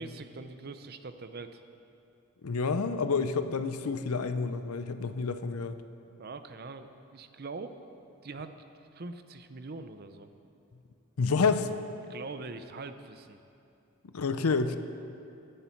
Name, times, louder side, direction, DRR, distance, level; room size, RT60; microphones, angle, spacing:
voice 1, 0.0-1.6 6.2-7.7 8.2-8.5 8.9-10.3 12.1-13.4, right 3 dB, 45° right, 9 dB, 0.6 m, -42 dB
voice 2, 2.4-5.8 11.2-11.7 14.1-14.8, left 4 dB, 85° left, 10 dB, 0.6 m, -29 dB
16.5 x 10.0 x 4.5 m, 2.6 s
head